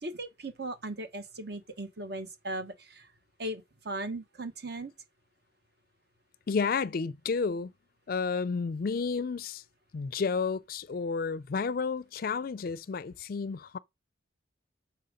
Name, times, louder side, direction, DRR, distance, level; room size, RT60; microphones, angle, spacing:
voice 1, 0.0-3.1 3.4-4.9, right 1 dB, 55° right, 1.1 m, -38 dB
voice 2, 6.5-7.7 8.1-9.6 9.9-13.8, left 5 dB, 50° left, 0.4 m, -31 dB
6.8 x 4.4 x 5.0 m
head